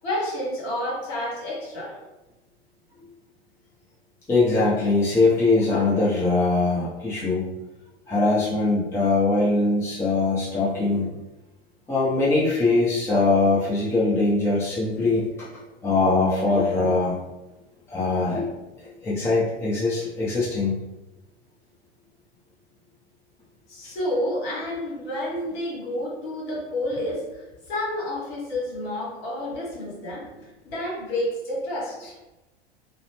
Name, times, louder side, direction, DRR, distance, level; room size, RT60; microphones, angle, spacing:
voice 1, 0.0-2.0 23.7-32.2, left 1 dB, 50° left, -4 dB, 1.4 m, -30 dB
voice 2, 4.3-7.4 8.1-11.1 11.9-15.5 15.8-17.2 17.9-18.5 18.8-20.7, left 3 dB, 10° left, -8 dB, 0.5 m, -22 dB
2.5 x 2.0 x 3.3 m, 1.0 s
figure-of-eight pair, 90°, 30 cm